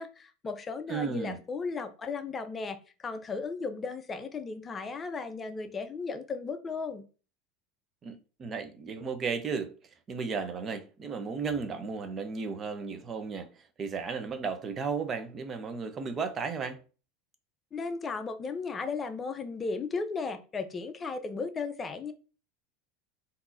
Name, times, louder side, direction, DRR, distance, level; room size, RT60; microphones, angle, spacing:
voice 1, 0.0-7.0 17.7-22.1, left 4 dB, 25° left, 0.6 m, -35 dB
voice 2, 0.9-1.4 8.0-9.7 10.1-13.5 13.8-16.8, right 5 dB, 35° right, 0.6 m, -34 dB
3.7 x 2.7 x 2.5 m
hypercardioid pair, 95°, 0 cm